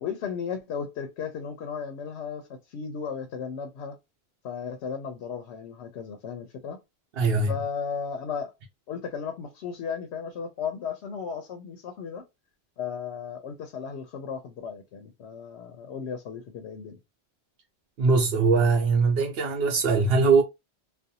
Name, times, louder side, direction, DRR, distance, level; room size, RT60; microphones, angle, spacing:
voice 1, 0.0-4.0 4.4-6.8 7.5-8.5 8.9-12.2 12.8-17.0, left 6 dB, 85° left, 0.8 m, -35 dB
voice 2, 7.2-7.6 18.0-20.4, right 4 dB, 65° right, 0.8 m, -21 dB
2.5 x 2.2 x 2.6 m
omnidirectional pair, 1.1 m